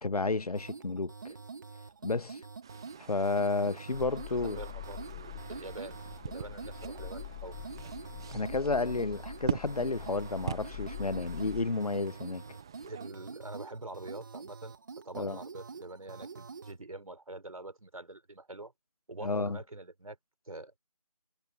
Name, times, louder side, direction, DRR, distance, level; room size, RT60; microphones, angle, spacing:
voice 1, 0.0-1.3 2.0-2.4 3.1-4.6 8.3-12.4 15.1-15.4 19.2-19.6, left 3 dB, 85° left, 1.0 m, -31 dB
sound 1, 0.6-16.8, right 4 dB, 35° right, 3.0 m, -46 dB
sound 2, 2.6-13.1, right 8 dB, 5° right, 0.7 m, -43 dB
sound 3, 3.9-11.7, left 16 dB, 10° left, 1.7 m, -45 dB
voice 2, 4.6-6.0 6.3-7.6 8.3-8.5 12.8-14.7 15.0-18.7 19.1-20.2 20.5-20.8, right 2 dB, 70° right, 4.2 m, -45 dB
figure-of-eight pair, 170°, 19 cm